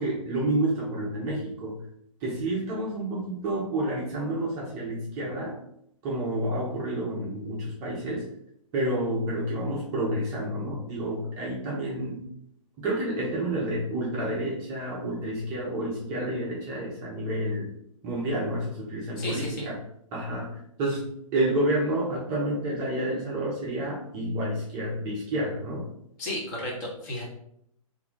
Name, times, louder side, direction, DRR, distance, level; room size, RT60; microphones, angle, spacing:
voice 1, 0.0-1.8 2.2-5.6 6.0-8.3 8.7-12.2 12.8-17.7 18.0-19.8 20.1-25.9, right 1 dB, 20° right, -4 dB, 0.5 m, -29 dB
voice 2, 19.2-19.7 26.2-27.2, left 1 dB, 30° left, -3 dB, 0.9 m, -33 dB
2.6 x 2.2 x 3.6 m, 0.73 s
figure-of-eight pair, 120°, 18 cm